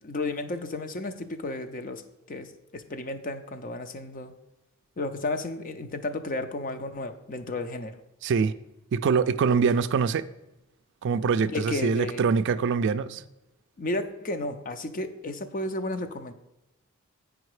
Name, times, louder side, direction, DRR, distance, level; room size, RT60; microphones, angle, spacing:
voice 1, 0.0-2.0 2.3-4.3 5.0-8.0 11.4-12.3 13.1-13.2 13.8-16.3, left 2 dB, 40° left, 0.6 m, -33 dB
voice 2, 8.2-8.5 8.9-10.3 11.0-13.2, right 5 dB, 60° right, 0.3 m, -24 dB
8.7 x 5.0 x 4.8 m
head